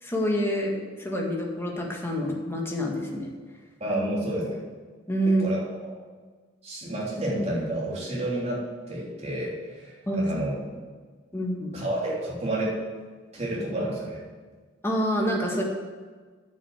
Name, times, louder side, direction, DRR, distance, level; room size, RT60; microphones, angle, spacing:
voice 1, 0.0-3.3 5.1-5.5 10.1-10.2 11.3-11.7 14.8-15.6, equal, 15° left, -1 dB, 1.9 m, -27 dB
voice 2, 3.8-4.6 5.2-5.6 6.6-10.5 11.7-12.8 13.3-14.2, right 1 dB, 35° right, -5 dB, 3.4 m, -30 dB
10.0 x 6.6 x 8.1 m, 1.5 s
head